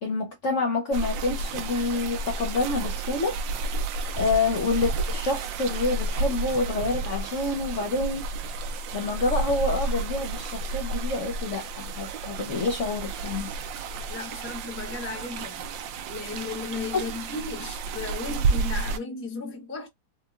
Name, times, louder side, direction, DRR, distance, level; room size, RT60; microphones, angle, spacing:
voice 1, 0.0-3.4 4.2-8.2 8.9-13.5 16.9-17.0, left 3 dB, 55° left, 0.9 m, -27 dB
sound 1, 0.9-19.0, right 3 dB, 80° right, 1.3 m, -31 dB
voice 2, 14.1-15.7 16.1-19.9, left 4 dB, 15° left, 0.4 m, -35 dB
4.6 x 2.2 x 2.4 m
omnidirectional pair, 2.0 m